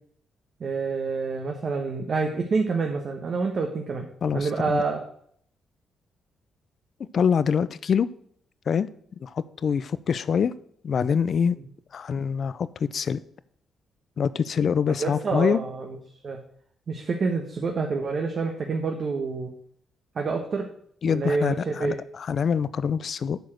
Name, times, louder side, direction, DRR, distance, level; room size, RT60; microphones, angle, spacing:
voice 1, 0.6-4.1 4.3-5.0 15.0-15.9 16.2-16.4 16.9-19.5 20.1-20.7 21.1-22.0, right 4 dB, 55° right, 2 dB, 1.2 m, -27 dB
voice 2, 4.2-4.8 7.1-8.1 8.7-8.9 9.2-10.5 10.8-11.6 11.9-13.2 14.2-15.6 21.0-23.4, left 7 dB, 55° left, 16 dB, 0.5 m, -25 dB
8.1 x 4.9 x 6.2 m, 0.64 s
cardioid pair, 70°, 0 cm